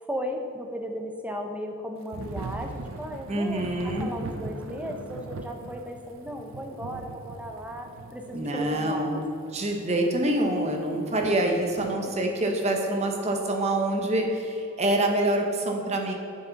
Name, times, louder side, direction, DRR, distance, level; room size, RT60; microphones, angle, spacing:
voice 1, 0.0-9.2 12.0-12.2, equal, 5° right, 3 dB, 0.6 m, -36 dB
Thunder / Rain, 2.1-11.9, right 3 dB, 65° right, 0.5 m, -41 dB
voice 2, 3.3-4.1 8.3-9.2 9.5-16.1, right 1 dB, 30° right, 2 dB, 0.9 m, -26 dB
8.7 x 6.9 x 4.0 m, 2.8 s
head